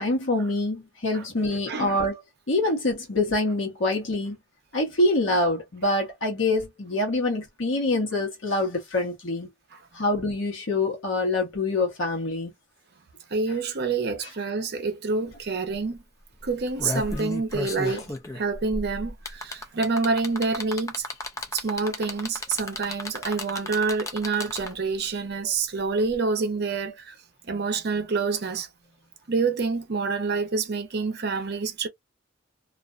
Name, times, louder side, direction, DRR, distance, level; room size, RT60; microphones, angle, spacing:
voice 1, 0.0-2.2 2.5-4.4 4.7-9.5 9.9-12.5 17.8-18.0, left 2 dB, 65° left, 1.0 m, -25 dB
voice 2, 1.7-2.0 9.7-9.8 13.3-16.0 16.4-21.1 21.5-27.2 27.4-28.7 29.3-31.9, right 4 dB, 50° right, 0.6 m, -27 dB
sound 1, 15.3-15.4 15.7-15.9 16.5-24.9 26.1-26.2, left 2 dB, 15° left, 0.3 m, -34 dB
2.4 x 2.1 x 2.4 m
head